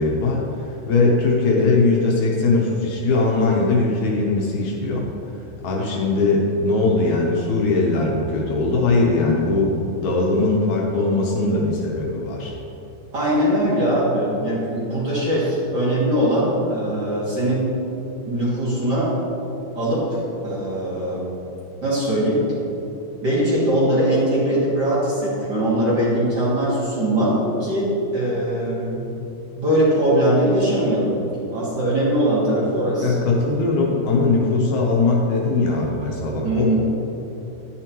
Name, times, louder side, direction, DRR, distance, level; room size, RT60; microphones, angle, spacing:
voice 1, 0.0-5.0 5.6-12.5 33.0-36.7, left 3 dB, 70° left, -2 dB, 2.2 m, -20 dB
voice 2, 13.1-17.7 18.3-19.1 19.7-21.2 21.8-22.4 23.2-29.1 29.6-31.1 31.5-33.1 36.4-36.9, right 1 dB, 35° right, -8 dB, 2.4 m, -21 dB
11.0 x 9.8 x 3.0 m, 2.9 s
omnidirectional pair, 3.6 m